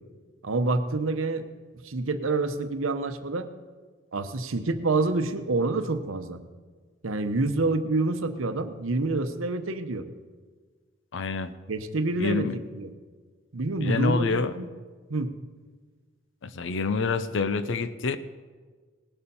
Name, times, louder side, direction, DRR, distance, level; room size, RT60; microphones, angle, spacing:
voice 1, 0.4-1.5 1.8-3.5 4.1-6.4 7.0-10.0 11.7-12.9 13.5-14.7 15.1-15.3, right 3 dB, 85° right, 9 dB, 0.9 m, -27 dB
voice 2, 11.1-11.5 12.2-12.5 13.8-14.5 16.4-18.2, left 4 dB, 65° left, 12 dB, 0.5 m, -27 dB
18.5 x 6.8 x 5.5 m, 1.5 s
head